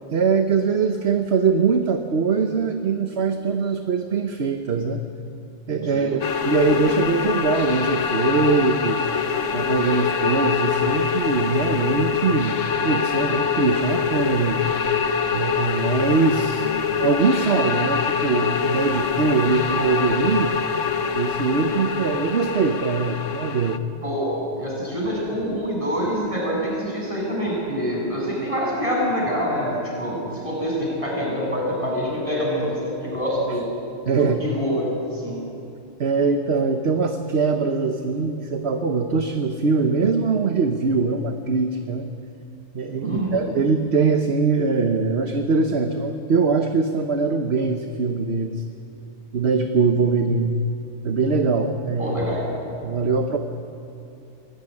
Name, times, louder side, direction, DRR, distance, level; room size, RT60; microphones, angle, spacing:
voice 1, 0.1-5.0 5.7-9.1 9.5-12.6 12.8-14.6 15.3-16.7 17.0-20.6 21.1-23.8 34.1-34.4 36.0-42.1 42.7-48.6 49.3-50.5 51.0-52.2 52.8-53.4, right 4 dB, 60° right, 6 dB, 1.3 m, -22 dB
sound 1, 6.2-23.8, left 6 dB, 80° left, 1.4 m, -24 dB
voice 2, 24.0-33.6 34.2-35.4 43.0-43.4 52.0-52.4, equal, 25° right, -4 dB, 7.9 m, -26 dB
24.0 x 17.5 x 9.9 m, 2.7 s
omnidirectional pair, 1.3 m